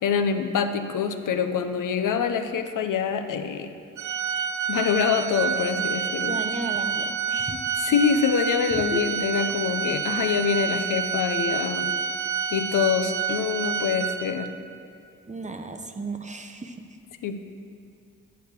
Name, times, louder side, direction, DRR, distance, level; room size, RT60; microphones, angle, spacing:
voice 1, 0.0-3.7 4.7-6.4 7.8-11.9 12.5-14.5 17.2-17.4, left 7 dB, 70° left, 8 dB, 0.6 m, -25 dB
Organ, 4.0-14.6, right 6 dB, 65° right, 0.6 m, -28 dB
voice 2, 6.3-7.7 8.7-9.0 15.3-16.8, right 2 dB, 20° right, 6 dB, 0.7 m, -34 dB
8.9 x 4.7 x 6.7 m, 2.5 s
cardioid pair, 60°, 32 cm